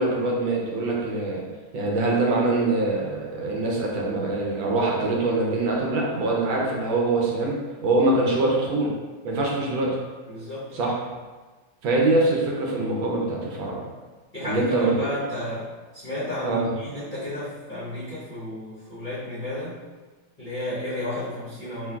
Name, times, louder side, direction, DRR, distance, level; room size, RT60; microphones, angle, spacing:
voice 1, 0.0-1.4 1.7-7.6 7.8-8.9 9.2-10.0 10.7-10.9 11.8-13.8 14.4-14.9 16.4-16.7, right 2 dB, 75° right, -2 dB, 1.4 m, -23 dB
voice 2, 10.3-10.9 14.3-19.8 20.4-22.0, left 1 dB, 35° left, -12 dB, 0.8 m, -32 dB
4.4 x 3.5 x 2.3 m, 1.3 s
omnidirectional pair, 2.3 m